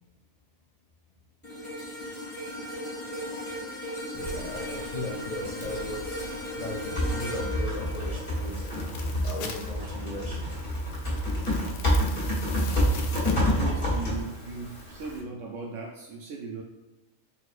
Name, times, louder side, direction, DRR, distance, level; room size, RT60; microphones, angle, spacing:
sound 1, 1.4-9.8 10.2-10.4, equal, 10° left, 1.4 m, -37 dB
voice 1, 4.1-6.2 6.5-8.6 9.2-10.5, left 2 dB, 60° left, -3 dB, 0.4 m, -37 dB
Typing, 4.1-15.2, equal, 45° left, 1.6 m, -29 dB
sound 2, 5.6-14.8, left 5 dB, 75° left, 0.9 m, -46 dB
voice 2, 13.5-16.6, right 4 dB, 75° right, 0 dB, 0.9 m, -38 dB
4.1 x 4.1 x 2.4 m, 1.1 s
omnidirectional pair, 1.3 m